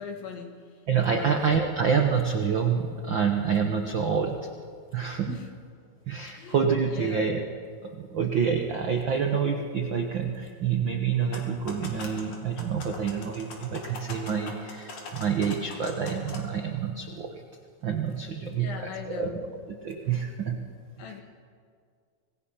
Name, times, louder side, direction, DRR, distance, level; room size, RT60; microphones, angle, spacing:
voice 1, 0.0-0.8 1.1-1.5 5.3-5.5 6.3-7.3 18.5-19.5 20.1-20.2 21.0-21.2, left 6 dB, 85° left, 3 dB, 3.7 m, -40 dB
voice 2, 0.9-4.4 4.9-5.3 6.1-7.5 7.8-17.4 17.8-18.7 19.1-19.5 19.8-20.6, right 6 dB, 80° right, 3 dB, 1.0 m, -27 dB
sound 1, 11.1-16.4, left 3 dB, 60° left, 3.8 m, -42 dB
26.0 x 19.0 x 5.7 m, 2.2 s
omnidirectional pair, 4.0 m